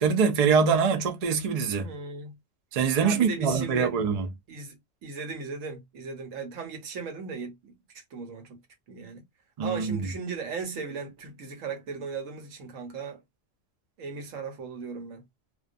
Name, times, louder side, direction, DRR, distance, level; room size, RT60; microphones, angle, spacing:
voice 1, 0.0-1.9 2.7-4.3 9.6-10.0, right 6 dB, 60° right, 0.4 m, -24 dB
voice 2, 1.8-2.4 3.0-3.9 4.5-8.6 8.9-9.2 9.6-13.2 14.0-15.2, right 5 dB, 80° right, 1.1 m, -37 dB
2.4 x 2.2 x 2.5 m
omnidirectional pair, 1.4 m